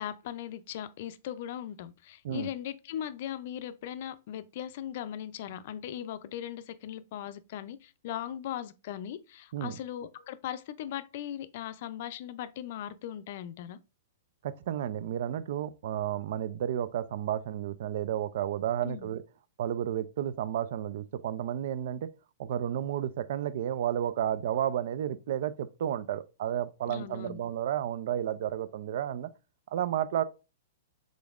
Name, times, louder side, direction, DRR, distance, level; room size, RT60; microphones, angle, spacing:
voice 1, 0.0-13.8 18.8-19.1 26.9-27.4, left 11 dB, 55° left, 0.4 m, -39 dB
voice 2, 14.4-19.2 19.6-22.1 22.4-29.3 29.7-30.2, right 10 dB, 60° right, 0.3 m, -32 dB
5.1 x 3.7 x 2.4 m
hypercardioid pair, 145°, 0 cm